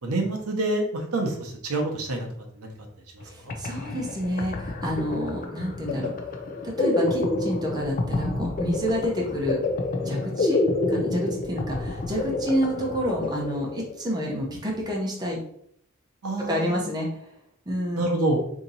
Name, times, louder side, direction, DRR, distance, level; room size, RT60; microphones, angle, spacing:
voice 1, 0.0-2.3 2.6-2.7 3.1-3.5 16.2-16.9 17.9-18.4, right 2 dB, 75° right, 2 dB, 0.7 m, -27 dB
sound 1, 3.2-3.3 3.5-14.1, left 2 dB, 40° left, 0.5 m, -28 dB
voice 2, 3.2-6.3 6.6-9.6 10.0-10.6 10.9-15.4 16.4-17.3 17.7-18.0, equal, 20° right, -2 dB, 0.8 m, -29 dB
2.9 x 2.7 x 3.9 m, 0.68 s
head